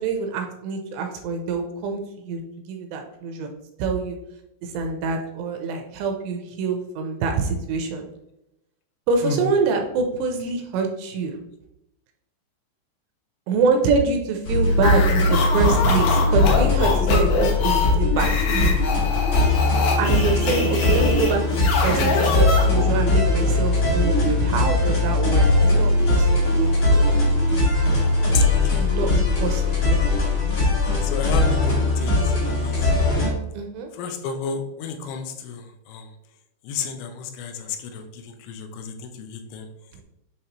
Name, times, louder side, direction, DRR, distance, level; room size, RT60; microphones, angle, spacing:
voice 1, 0.0-2.0 2.2-2.4 2.7-3.5 3.8-4.2 4.6-8.1 9.1-11.4 13.5-18.8 20.0-26.7 28.8-30.0 33.5-33.9, right 4 dB, 80° right, 4 dB, 2.7 m, -25 dB
sound 1, 14.4-33.3, left 2 dB, 50° left, 1.3 m, -20 dB
sound 2, 14.8-23.0, left 3 dB, 70° left, 2.7 m, -25 dB
voice 2, 28.3-28.9 31.0-31.7 32.0-32.8 33.9-36.1 36.6-39.7, left 5 dB, 85° left, 6 dB, 3.0 m, -32 dB
9.2 x 3.5 x 2.9 m, 0.85 s
omnidirectional pair, 5.2 m